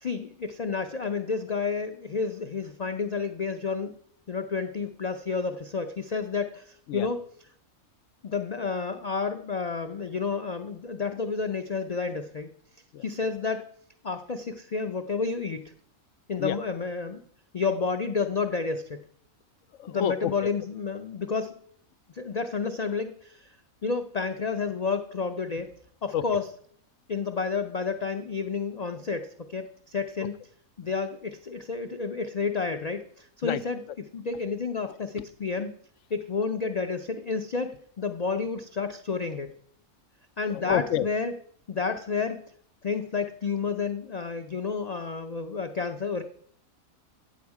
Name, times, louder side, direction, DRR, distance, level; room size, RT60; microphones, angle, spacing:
voice 1, 0.0-3.9 4.3-7.2 8.2-12.5 13.0-13.7 14.0-15.7 16.3-17.2 17.5-19.0 19.9-21.5 22.1-23.5 23.8-25.7 26.0-26.5 27.1-30.4 30.8-35.7 36.1-39.5 40.4-41.3 41.7-42.4 42.8-46.2, left 4 dB, 90° left, 7 dB, 0.3 m, -30 dB
voice 2, 19.8-20.3 26.1-26.2 33.4-33.6 40.5-41.1, left 10 dB, 65° left, 12 dB, 0.9 m, -28 dB
15.5 x 7.2 x 4.7 m, 0.63 s
omnidirectional pair, 1.5 m